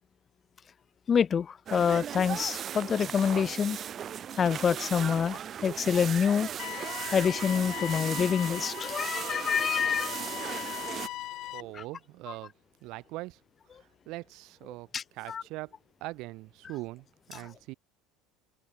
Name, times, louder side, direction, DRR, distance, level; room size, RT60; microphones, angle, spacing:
voice 1, 1.1-3.8 4.4-6.5 7.1-10.4 11.7-11.8 14.9-15.0 15.3-15.4, left 7 dB, 25° left, 0.3 m, -27 dB
sound 1, 1.7-11.1, right 9 dB, 30° right, 1.5 m, -37 dB
sound 2, 6.6-11.6, left 16 dB, 45° left, 1.0 m, -39 dB
voice 2, 11.5-12.5 12.8-13.4 13.7-15.7 16.0-17.7, right 21 dB, 55° right, 2.6 m, -42 dB
cardioid pair, 165°, 0 cm